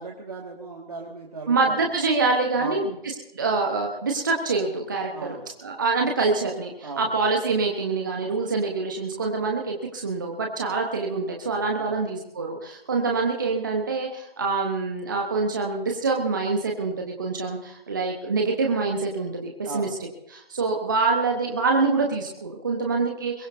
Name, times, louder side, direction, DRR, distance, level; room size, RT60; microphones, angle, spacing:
voice 1, 0.0-1.8 2.6-3.0 5.1-5.5 6.8-7.1 11.8-12.0 19.6-20.0, right 3 dB, 40° right, -1 dB, 2.0 m, -37 dB
voice 2, 1.5-2.9 3.3-5.4 5.6-19.9 20.3-23.5, right 4 dB, 20° right, 1 dB, 1.1 m, -25 dB
22.5 x 19.0 x 2.7 m, 0.83 s
figure-of-eight pair, 160°, 29 cm